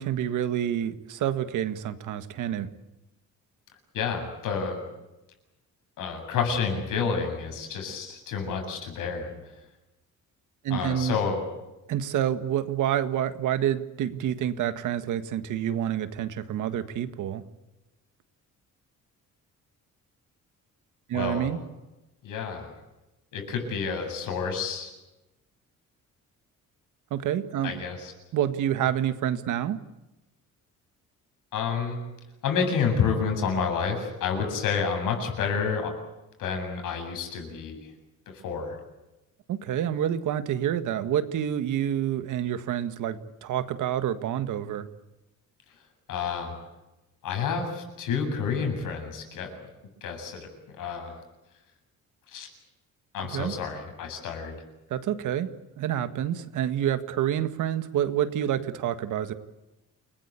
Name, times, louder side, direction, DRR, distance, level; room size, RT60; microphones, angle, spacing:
voice 1, 0.0-2.7 10.6-11.2 11.9-17.4 21.1-21.6 27.1-27.8 28.3-29.8 39.5-44.9 53.2-53.6 54.9-59.3, right 10 dB, 70° right, 10 dB, 1.8 m, -28 dB
voice 2, 3.9-4.8 6.0-9.3 10.7-11.4 21.1-21.5 22.2-22.7 23.3-24.9 27.6-28.1 31.5-32.0 32.4-35.9 36.4-37.8 38.4-38.8 46.1-46.5 47.2-49.5 50.0-50.5 50.8-51.2 52.3-52.5 53.1-54.5, left 6 dB, 80° left, 5 dB, 7.8 m, -29 dB
29.0 x 20.5 x 8.5 m, 1.0 s
cardioid pair, 175°, 31 cm